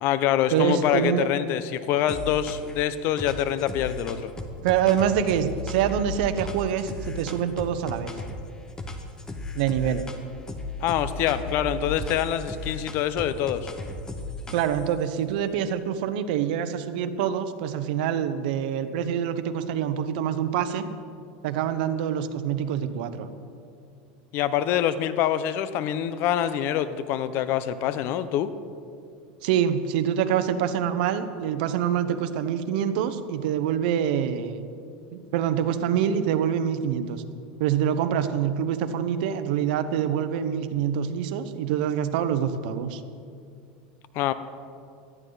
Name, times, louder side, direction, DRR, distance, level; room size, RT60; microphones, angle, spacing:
voice 1, 0.0-4.3 10.8-13.7 24.3-28.5 44.1-44.3, left 10 dB, 50° left, 13 dB, 0.8 m, -25 dB
voice 2, 0.5-1.3 4.6-8.1 9.5-10.0 14.5-20.9 21.4-23.3 29.4-34.7 35.1-37.2 37.6-43.0, right 9 dB, 70° right, 10 dB, 1.0 m, -25 dB
sound 1, 2.1-2.8 3.2-8.4 8.8-10.2 10.5-14.9, left 2 dB, 15° left, 1.3 m, -35 dB
18.0 x 13.5 x 4.1 m, 2.4 s
supercardioid pair, 135°, 5 cm